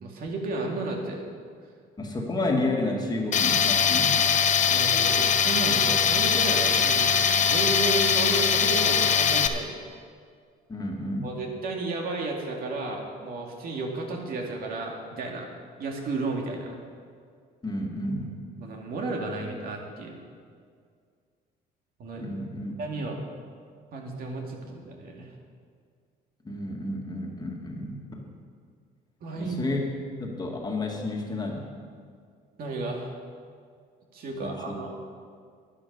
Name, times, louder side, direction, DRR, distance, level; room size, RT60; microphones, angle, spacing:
voice 1, 0.0-1.2 4.7-9.8 11.2-15.5 15.8-16.7 18.6-20.2 22.0-22.3 22.8-23.2 23.9-25.3 29.2-29.6 32.6-33.2 34.1-34.9, right 2 dB, 60° right, 0 dB, 2.3 m, -33 dB
voice 2, 2.0-4.3 10.7-11.3 17.6-18.4 22.2-22.7 26.4-28.3 29.4-29.8 30.2-31.7 34.4-34.8, left 2 dB, 25° left, 0 dB, 1.9 m, -31 dB
Tools, 3.3-9.5, left 7 dB, 45° left, 0.8 m, -22 dB
11.5 x 10.5 x 5.4 m, 2.1 s
cardioid pair, 110°, 17 cm